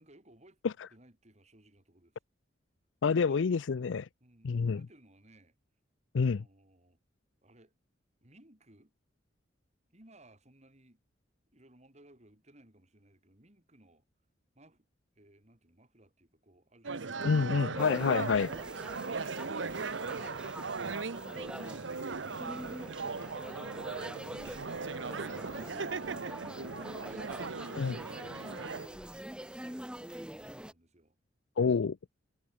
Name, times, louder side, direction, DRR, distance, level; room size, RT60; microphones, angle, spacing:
voice 1, 0.0-2.2 3.1-3.6 4.2-5.5 6.2-7.0 7.4-7.8 8.2-8.9 9.9-11.0 11.5-14.1 14.5-14.9 15.1-17.8 28.4-31.2, right 1 dB, 35° right, 4.4 m, -61 dB
voice 2, 3.0-4.0 4.4-4.8 6.1-6.4 17.2-18.5 27.8-28.0 31.6-32.0, left 5 dB, 85° left, 0.5 m, -28 dB
sound 1, 16.8-28.9, right 4 dB, 85° right, 1.0 m, -38 dB
sound 2, 17.8-30.7, equal, 5° right, 1.9 m, -45 dB
head